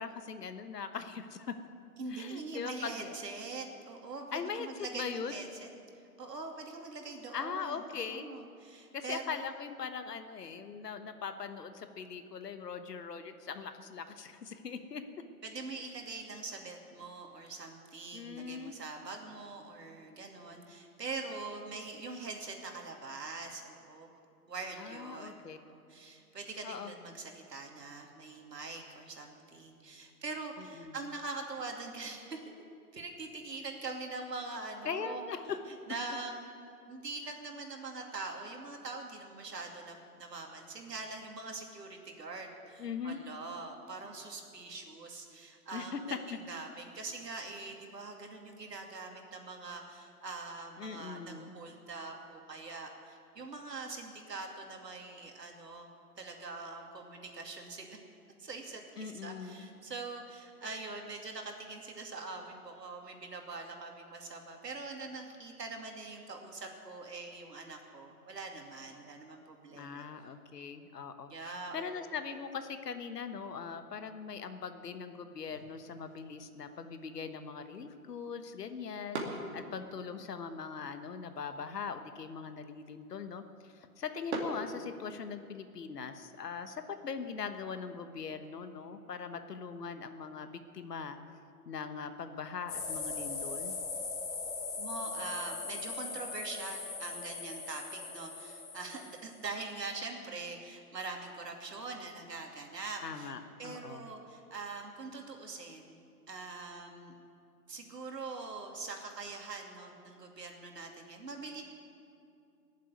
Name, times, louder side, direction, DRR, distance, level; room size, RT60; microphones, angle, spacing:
voice 1, 0.0-1.5 2.1-3.1 4.3-5.3 7.3-8.3 8.9-15.0 18.1-18.7 24.8-25.6 26.6-26.9 30.6-31.0 34.8-35.6 42.8-43.2 45.7-46.2 50.8-51.5 59.0-59.7 69.7-91.2 91.7-93.8 103.0-104.1, left 6 dB, 80° left, 9 dB, 1.3 m, -41 dB
voice 2, 2.0-5.7 6.2-9.3 15.4-24.1 24.5-32.4 32.9-35.2 35.9-36.6 36.9-55.9 56.2-58.0 58.4-70.1 71.3-72.1 94.8-103.3 103.6-107.1 107.7-111.6, right 3 dB, 90° right, 2 dB, 2.6 m, -43 dB
sound 1, 75.4-85.4, right 2 dB, 45° right, 2.4 m, -46 dB
sound 2, 92.7-99.4, left 4 dB, 30° left, 3.3 m, -40 dB
18.0 x 7.5 x 9.5 m, 2.5 s
hypercardioid pair, 150°, 47 cm